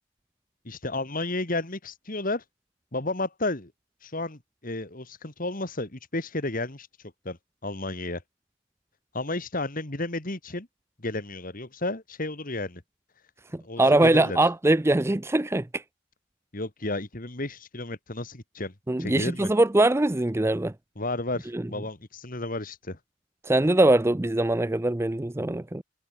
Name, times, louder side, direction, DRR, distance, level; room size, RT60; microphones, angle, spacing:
voice 1, 0.6-2.4 2.9-3.7 4.0-6.9 7.2-7.4 7.6-8.2 9.1-10.7 11.0-12.8 13.6-14.4 16.5-18.7 19.0-19.5 21.0-23.0, left 2 dB, 40° left, 2.1 m, -32 dB
voice 2, 13.5-15.8 18.9-20.7 21.5-21.6 23.4-25.8, right 2 dB, 10° right, 0.4 m, -22 dB
head